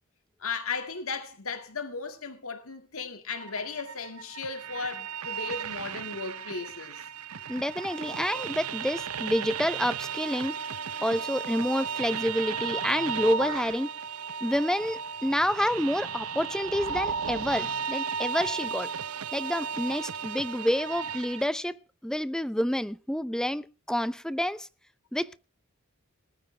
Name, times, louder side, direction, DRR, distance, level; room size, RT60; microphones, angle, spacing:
voice 1, 0.4-7.0, left 4 dB, 70° left, 2.2 m, -36 dB
sound 1, 3.4-21.4, right 6 dB, 90° right, 0.8 m, -35 dB
voice 2, 7.5-10.5 11.0-13.9 14.4-18.9 19.3-24.7 25.1-25.4, equal, 5° left, 0.6 m, -28 dB
19.5 x 14.0 x 3.4 m
head